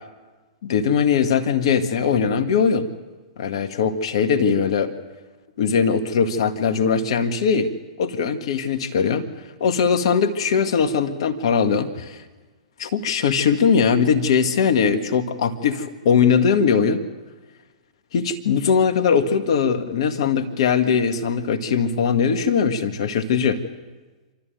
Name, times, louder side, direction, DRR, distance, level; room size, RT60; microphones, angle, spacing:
voice 1, 0.6-2.9 3.4-4.9 5.6-7.7 8.0-9.3 9.6-12.2 12.8-17.0 18.1-23.6, left 6 dB, 55° left, 7 dB, 1.9 m, -20 dB
27.5 x 13.5 x 9.3 m, 1.3 s
figure-of-eight pair, 105°, 3 cm